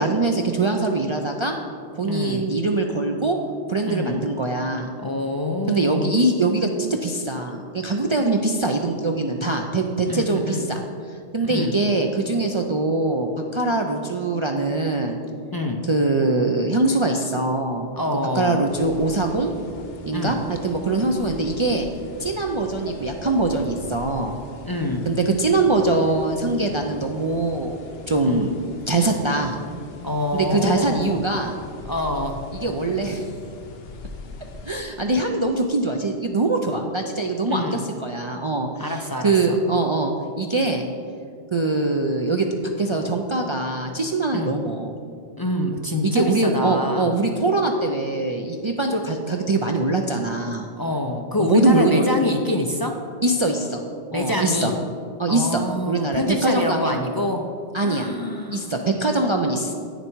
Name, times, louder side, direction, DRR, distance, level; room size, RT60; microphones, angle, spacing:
voice 1, 0.0-1.6 2.0-3.4 3.7-4.9 5.7-10.8 11.3-15.2 15.9-17.9 18.3-19.5 20.1-21.9 22.2-24.4 25.1-27.8 28.1-28.5 28.9-29.5 30.3-31.5 32.5-33.3 34.6-40.9 41.5-42.5 42.8-44.9 46.0-50.7 51.4-52.0 53.2-53.8 54.1-54.7 55.2-57.0 57.7-58.1 58.5-59.7, right 2 dB, 50° right, 2 dB, 0.3 m, -23 dB
voice 2, 2.0-2.4 3.8-4.2 5.0-6.2 10.1-10.7 11.4-11.7 15.5-15.8 18.0-18.6 20.1-20.4 24.6-25.1 28.2-28.5 30.0-31.2 31.9-32.4 37.5-37.8 38.8-39.6 44.3-44.6 45.4-47.1 50.8-52.9 54.1-54.7 55.3-57.4 57.8-58.7, left 1 dB, 35° left, 2 dB, 0.3 m, -26 dB
sound 1, 18.7-34.7, left 3 dB, 60° left, 1.0 m, -41 dB
8.9 x 6.8 x 4.5 m, 2.3 s
omnidirectional pair, 1.2 m